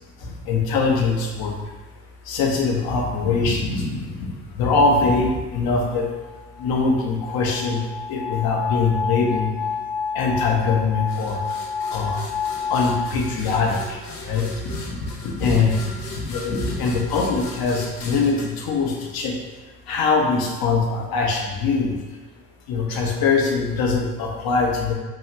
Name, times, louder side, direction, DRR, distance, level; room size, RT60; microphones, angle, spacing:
voice 1, 0.2-1.5 2.3-4.3 4.6-6.0 6.6-7.8 8.1-9.5 10.1-11.4 11.9-12.2 12.7-13.8 14.2-14.4 15.4-19.3 19.9-21.9 22.7-24.9, left 4 dB, 45° left, 0 dB, 0.8 m, -22 dB
sound 1, 5.9-13.0, left 6 dB, 5° left, 0.5 m, -29 dB
sound 2, 11.1-19.6, left 3 dB, 85° left, 0.7 m, -38 dB
3.0 x 2.4 x 3.0 m, 1.3 s
hypercardioid pair, 60°, 50 cm